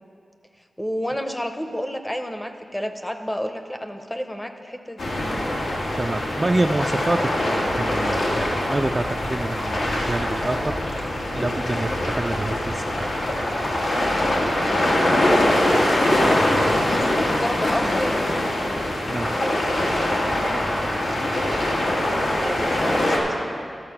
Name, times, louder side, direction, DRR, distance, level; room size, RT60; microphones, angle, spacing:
voice 1, 0.8-5.1 16.9-18.3 22.3-23.1, equal, 10° left, 7 dB, 0.6 m, -30 dB
sound 1, 5.0-23.2, left 1 dB, 90° left, 1.6 m, -23 dB
voice 2, 6.0-10.7 11.3-13.1 19.1-19.3, right 2 dB, 25° right, 5 dB, 0.3 m, -27 dB
12.5 x 6.7 x 5.8 m, 2.3 s
wide cardioid pair, 110°, 0 cm